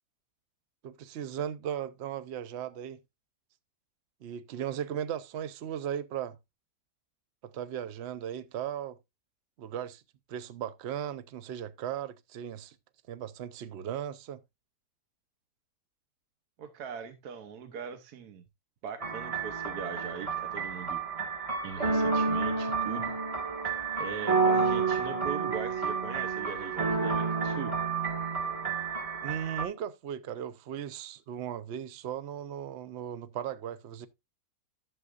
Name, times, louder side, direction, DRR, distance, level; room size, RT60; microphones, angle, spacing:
voice 1, 0.8-3.0 4.2-6.4 7.4-9.0 9.6-10.0 10.3-12.8 13.1-14.4 29.2-34.1, right 9 dB, 60° right, 0.7 m, -37 dB
voice 2, 16.6-18.4 18.8-21.0 21.6-23.1 24.0-27.7, right 7 dB, 75° right, 1.4 m, -41 dB
sound 1, 19.0-29.6, right 4 dB, 20° right, 1.7 m, -30 dB
11.5 x 7.4 x 2.4 m
omnidirectional pair, 1.7 m